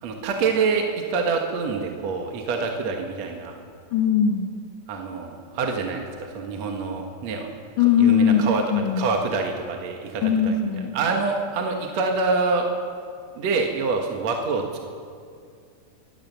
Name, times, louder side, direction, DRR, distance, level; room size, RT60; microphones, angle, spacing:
voice 1, 0.0-0.8 1.1-3.5 4.9-7.5 8.0-8.6 9.0-10.7 10.9-12.7 13.4-14.8, right 4 dB, 55° right, 2 dB, 2.2 m, -26 dB
voice 2, 3.9-4.5 7.8-9.1 10.2-11.0, left 7 dB, 70° left, 3 dB, 1.1 m, -20 dB
24.5 x 16.5 x 6.9 m, 2.2 s
omnidirectional pair, 4.4 m